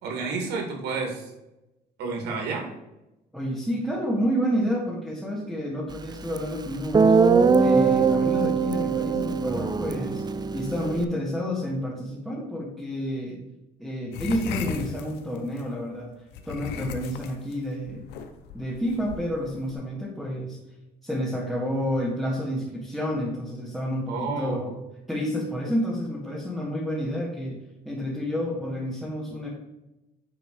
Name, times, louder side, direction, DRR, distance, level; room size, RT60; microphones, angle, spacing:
voice 1, 0.0-1.3 2.0-2.7 24.1-24.7, right 4 dB, 75° right, 0 dB, 2.7 m, -30 dB
voice 2, 3.3-7.2 7.6-10.2 10.5-13.4 13.8-16.1 16.5-18.1 18.5-20.6 21.0-24.7 25.1-27.6 27.9-29.5, equal, ahead, -4 dB, 2.0 m, -29 dB
Guitar, 6.4-6.5 6.9-11.0, right 5 dB, 25° right, 0.5 m, -21 dB
sound 1, 14.1-15.6 16.3-19.7, left 7 dB, 85° left, 0.9 m, -37 dB
9.7 x 3.9 x 4.9 m, 0.96 s
cardioid pair, 110°, 17 cm